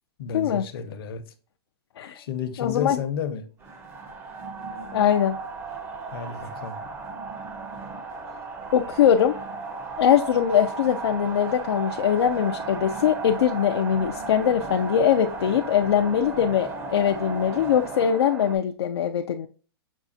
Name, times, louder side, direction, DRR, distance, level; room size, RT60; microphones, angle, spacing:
voice 1, 0.2-1.2 2.1-3.4 6.1-6.8, left 7 dB, 60° left, 0.7 m, -31 dB
voice 2, 2.6-3.0 4.9-5.4 8.7-9.4 10.0-19.5, left 9 dB, 80° left, 0.4 m, -22 dB
sound 1, 3.6-18.6, right 4 dB, 15° right, 0.5 m, -35 dB
6.1 x 2.3 x 2.6 m
hypercardioid pair, 135°, 13 cm